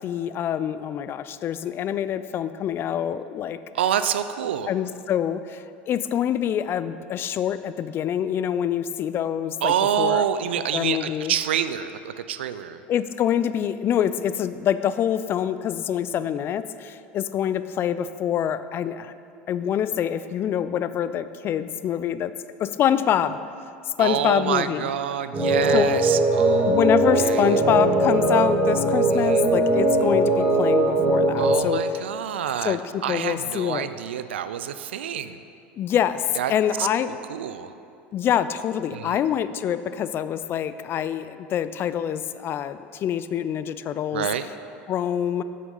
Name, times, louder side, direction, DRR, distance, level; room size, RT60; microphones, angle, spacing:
voice 1, 0.0-3.6 4.7-10.2 10.7-11.3 12.9-19.1 19.5-22.3 22.6-23.4 24.0-24.9 25.7-25.9 26.6-31.8 32.6-33.9 35.8-37.1 38.1-44.3 44.9-45.4, left 9 dB, 40° left, 13 dB, 0.4 m, -25 dB
voice 2, 3.7-4.7 9.6-12.8 24.0-27.5 29.1-29.5 31.4-32.8 33.0-35.4 36.4-36.5 36.8-37.7 38.9-39.2 44.1-44.5, right 9 dB, 90° right, 11 dB, 0.4 m, -27 dB
sound 1, 25.3-31.5, right 2 dB, 30° right, 2.0 m, -20 dB
7.7 x 6.5 x 5.5 m, 2.5 s
hypercardioid pair, 90°, 6 cm